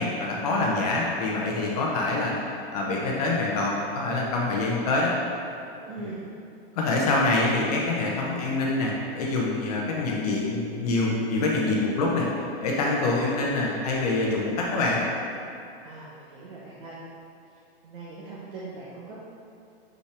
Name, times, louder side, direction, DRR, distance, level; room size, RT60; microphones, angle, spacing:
voice 1, 0.0-2.3 2.7-5.1 6.0-6.1 6.7-12.3 12.6-15.0, left 2 dB, 40° left, -3 dB, 0.8 m, -25 dB
voice 2, 5.8-6.2 15.8-17.0 17.8-19.2, right 3 dB, 55° right, -7 dB, 1.2 m, -41 dB
6.4 x 5.6 x 3.4 m, 2.5 s
supercardioid pair, 170°, 31 cm